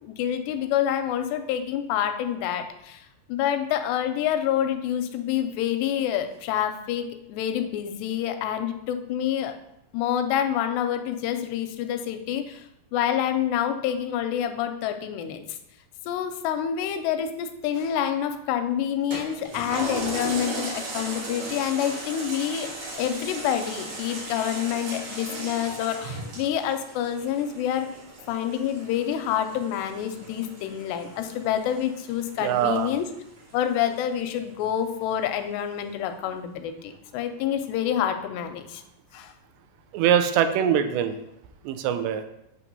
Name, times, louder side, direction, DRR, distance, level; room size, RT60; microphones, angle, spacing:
voice 1, 0.0-3.0 3.3-9.5 9.9-12.6 12.9-15.6 16.1-22.7 23.0-27.9 28.3-33.1 33.5-38.8 39.1-39.3, left 10 dB, 85° left, 7 dB, 2.7 m, -27 dB
Toilet flush, 19.1-33.9 34.4-34.5, right 2 dB, 60° right, 1.5 m, -37 dB
voice 2, 32.4-32.9 39.9-41.2 41.6-42.2, right 9 dB, 85° right, 9 dB, 2.7 m, -23 dB
8.6 x 3.2 x 5.3 m, 0.80 s
omnidirectional pair, 4.9 m